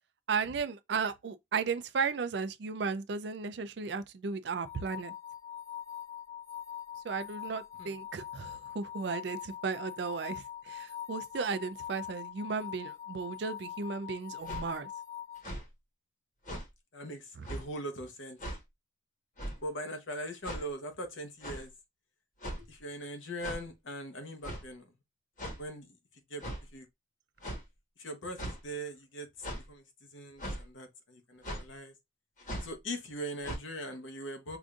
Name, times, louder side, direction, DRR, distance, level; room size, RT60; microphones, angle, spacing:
voice 1, 0.3-5.1 7.0-14.9 17.4-17.5, right 5 dB, 60° right, 0.4 m, -35 dB
sound 1, 4.6-15.4, left 10 dB, 15° left, 0.4 m, -43 dB
sound 2, 14.4-14.7 15.4-15.7 16.4-16.7 17.4-17.6 18.4-18.6 19.4-19.6 20.4-20.6 21.4-21.6 22.4-22.7 23.4-23.6 24.4-24.6 25.4-25.6 26.4-26.6 27.4-27.6 28.4-28.6 29.4-29.7 30.4-30.6 31.4-31.6 32.4-32.7 33.4-33.6, equal, 45° left, 1.2 m, -39 dB
voice 2, 16.9-18.4 19.6-21.7 22.6-24.8 25.6-26.0 26.3-26.5 26.7-26.8 28.0-31.9 32.6-34.6, right 1 dB, 85° left, 1.0 m, -41 dB
4.9 x 2.6 x 2.4 m
head